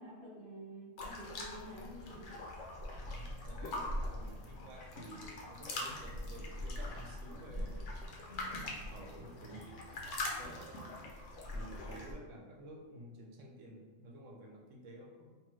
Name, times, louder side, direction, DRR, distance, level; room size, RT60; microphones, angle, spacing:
voice 1, 0.0-2.2, equal, 45° right, -6 dB, 1.0 m, -49 dB
sound 1, 1.0-12.1, left 1 dB, 70° left, 0.9 m, -42 dB
voice 2, 2.9-7.9 8.5-9.9 10.3-11.1 11.5-15.4, right 1 dB, 80° right, 0 dB, 1.0 m, -52 dB
2.7 x 2.4 x 3.0 m, 1.4 s
omnidirectional pair, 1.3 m